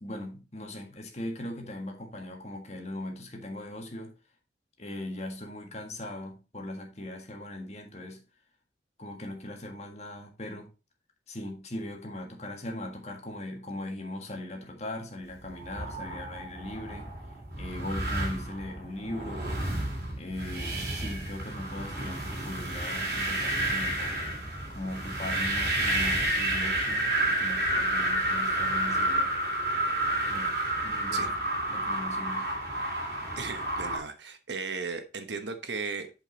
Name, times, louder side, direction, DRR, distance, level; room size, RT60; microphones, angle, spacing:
voice 1, 0.0-4.1 4.8-8.2 9.0-10.7 11.3-17.1 17.6-19.5 20.1-24.2 24.7-29.3 30.3-30.6 30.8-31.3 31.7-32.5, left 1 dB, 40° left, 1.6 m, -39 dB
sound 1, 15.5-34.0, right 1 dB, 55° right, 3.3 m, -30 dB
voice 2, 33.4-36.1, right 4 dB, 85° right, 1.2 m, -36 dB
8.1 x 5.2 x 3.9 m
head